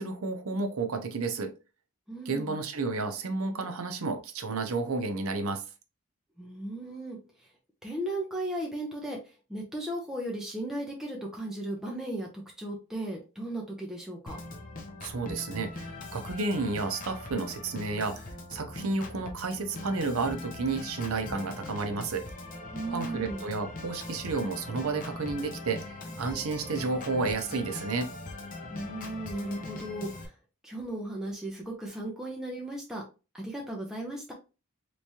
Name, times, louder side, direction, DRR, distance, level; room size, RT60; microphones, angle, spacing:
voice 1, 0.0-1.5 2.3-5.6 15.0-22.3 22.9-28.1, right 3 dB, 70° right, 0.6 m, -31 dB
voice 2, 2.1-2.6 6.4-7.2 7.8-9.2 9.5-14.4 22.7-23.4 28.7-30.3 30.6-33.0 33.3-34.3, right 1 dB, ahead, 0.6 m, -36 dB
Organ, 14.3-30.3, left 2 dB, 35° left, 0.6 m, -41 dB
3.4 x 3.1 x 2.7 m
head